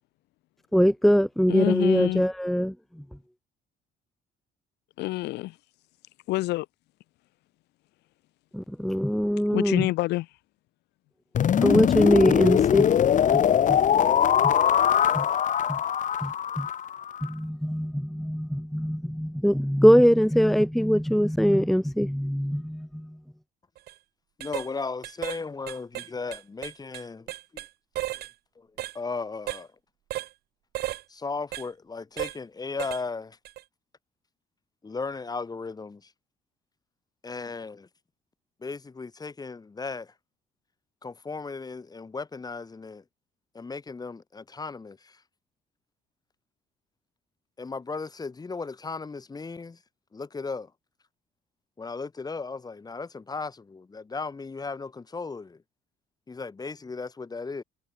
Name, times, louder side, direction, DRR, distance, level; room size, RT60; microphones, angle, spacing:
voice 1, 0.7-2.7 8.5-9.9 11.6-12.9 13.3-13.4 13.7-13.8 15.1-15.2 15.7-15.8 16.2-16.7 17.2-23.1, equal, ahead, 0.8 m, -22 dB
voice 2, 1.5-2.3 5.0-5.6 6.3-6.7 9.5-10.3, left 19 dB, 85° left, 2.3 m, -27 dB
sound 1, 11.3-17.3, left 9 dB, 50° left, 2.8 m, -22 dB
sound 2, 23.8-23.9 24.4-24.7 25.0-25.4 25.7-27.7 27.9-28.3 28.8-29.0 29.5-29.6 30.1-30.3 30.7-31.0 31.5-31.7 32.2-32.4 32.8-33.0 33.4-33.6, right 15 dB, 70° right, 1.8 m, -34 dB
voice 3, 24.4-27.3 27.5-27.6 28.6-28.7 28.9-29.7 31.1-33.4 34.8-36.0 37.2-37.9 38.6-40.1 41.0-43.0 43.5-45.1 47.6-49.8 50.1-50.7 51.8-55.6 56.3-57.6, left 4 dB, 25° left, 4.8 m, -36 dB
cardioid pair, 110°, 17 cm